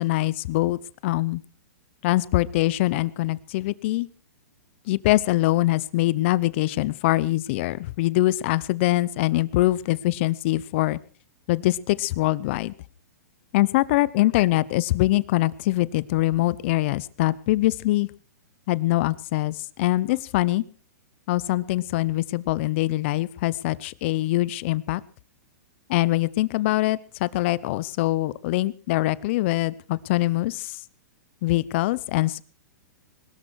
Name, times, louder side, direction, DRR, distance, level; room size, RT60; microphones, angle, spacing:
voice 1, 0.0-1.4 2.0-4.1 4.9-11.0 11.5-12.7 13.5-18.1 18.7-20.6 21.3-25.0 25.9-30.8 31.4-32.4, left 17 dB, 45° left, 20 dB, 0.8 m, -23 dB
21.0 x 13.0 x 4.7 m, 0.40 s
hypercardioid pair, 145°, 9 cm